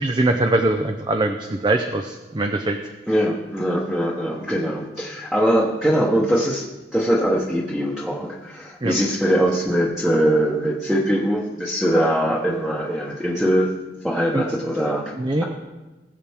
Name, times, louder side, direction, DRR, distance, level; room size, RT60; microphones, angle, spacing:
voice 1, 0.0-2.9 8.8-9.0 14.3-14.4 15.2-15.4, right 2 dB, 25° right, 5 dB, 0.6 m, -22 dB
voice 2, 3.1-13.7 14.0-15.1, equal, ahead, -5 dB, 1.1 m, -22 dB
20.0 x 7.5 x 3.6 m, 1.2 s
head